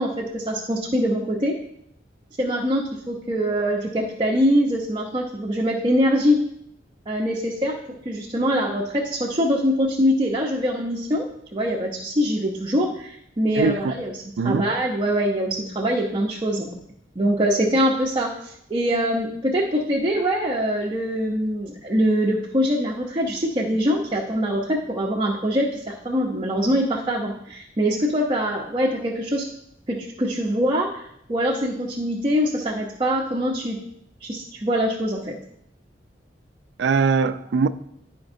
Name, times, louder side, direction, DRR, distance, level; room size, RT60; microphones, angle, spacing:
voice 1, 0.0-1.5 2.4-6.4 7.1-7.8 8.0-11.3 11.5-14.1 14.4-16.7 17.2-29.5 29.9-33.8 34.2-35.4, equal, 30° right, 0.7 m, -23 dB
voice 2, 13.5-13.9 14.4-14.6 36.8-37.7, right 5 dB, 75° right, 0.4 m, -21 dB
11.0 x 5.1 x 2.6 m
head